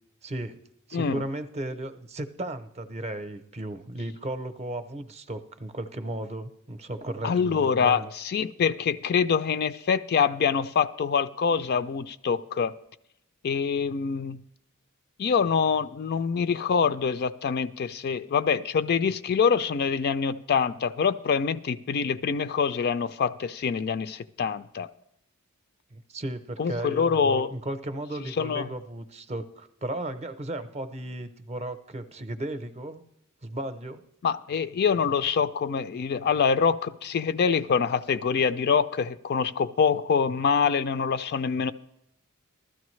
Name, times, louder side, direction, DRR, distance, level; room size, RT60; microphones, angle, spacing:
voice 1, 0.2-0.6 0.9-8.1 25.9-33.0 33.4-34.0, right 1 dB, 30° right, 0.6 m, -35 dB
voice 2, 7.2-12.7 13.4-14.4 15.2-24.9 26.6-27.5 28.4-28.7 34.2-41.7, left 6 dB, 50° left, 0.4 m, -25 dB
15.5 x 13.0 x 3.2 m
head